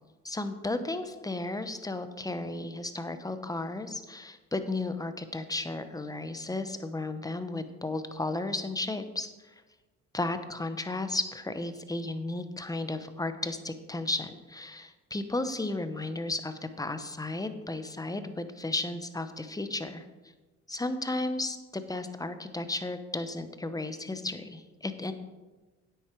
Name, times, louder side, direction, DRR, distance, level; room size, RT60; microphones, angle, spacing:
voice 1, 0.2-9.3 10.1-20.0 20.7-25.1, left 2 dB, 10° left, 10 dB, 0.9 m, -34 dB
9.5 x 8.3 x 4.6 m, 1.2 s
cardioid pair, 90°, 30 cm